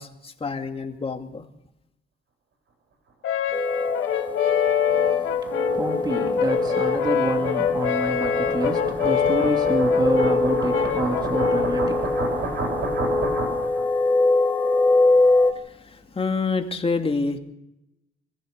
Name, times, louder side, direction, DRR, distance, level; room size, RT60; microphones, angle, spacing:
voice 1, 0.0-1.4 15.5-17.4, left 4 dB, 30° left, 2.4 m, -28 dB
Brass instrument, 3.2-11.8, left 10 dB, 80° left, 1.8 m, -25 dB
sound 1, 3.5-15.5, left 2 dB, 10° left, 2.6 m, -23 dB
sound 2, 3.9-13.8, right 3 dB, 65° right, 6.5 m, -32 dB
voice 2, 4.9-12.7, right 1 dB, 20° right, 2.6 m, -29 dB
26.0 x 15.0 x 6.7 m
cardioid pair, 90°, 20 cm